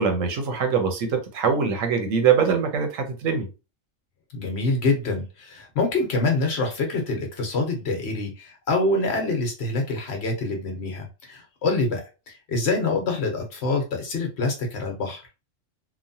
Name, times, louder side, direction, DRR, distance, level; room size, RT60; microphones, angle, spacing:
voice 1, 0.0-3.5, right 6 dB, 85° right, 4 dB, 1.1 m, -23 dB
voice 2, 4.3-15.2, left 3 dB, 60° left, 2 dB, 1.0 m, -26 dB
3.1 x 2.2 x 2.6 m, 0.30 s
omnidirectional pair, 1.3 m